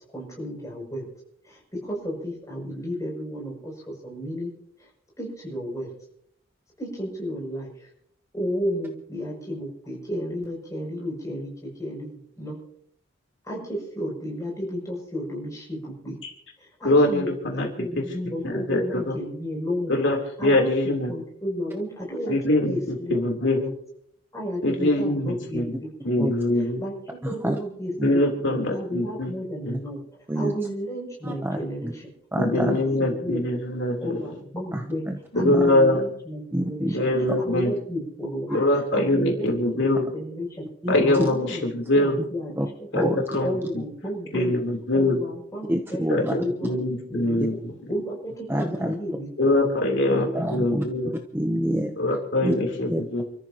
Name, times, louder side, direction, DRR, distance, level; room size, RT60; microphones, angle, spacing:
voice 1, 0.1-1.1 1.5-4.5 5.2-5.9 6.8-7.7 8.3-12.6 13.5-16.2 16.8-19.9 20.4-20.7 21.1-22.4 22.6-23.7 24.3-26.3 26.8-26.9 27.2-30.0 30.3-32.1 32.5-33.5 34.0-35.0 35.3-37.1 37.4-38.6 38.9-40.6 41.0-41.7 41.9-43.1 43.4-44.5 44.9-46.0 46.4-46.8 47.1-47.6 47.9-49.7 50.1-50.3, equal, 15° left, -3 dB, 7.2 m, -32 dB
voice 2, 16.8-19.2 19.9-21.1 22.3-23.6 24.6-25.7 26.0-26.8 28.0-29.3 29.6-29.8 32.4-34.3 35.3-36.1 36.9-37.7 38.5-40.1 40.9-42.2 42.9-43.8 44.3-45.2 46.1-47.7 49.4-51.1 52.0-53.2, left 1 dB, 60° left, 0 dB, 3.5 m, -23 dB
voice 3, 27.2-27.6 28.0-28.1 30.3-30.5 31.2-31.9 32.3-32.8 34.7-35.7 36.5-36.9 37.3-37.4 38.5-38.6 40.8-41.3 42.6-42.7 42.9-43.2 45.7-46.3 48.5-48.9 50.3-50.8 51.3-52.0 52.4-52.6 52.9-53.2, equal, 10° right, 4 dB, 0.8 m, -27 dB
28.5 x 14.0 x 3.0 m, 0.70 s
head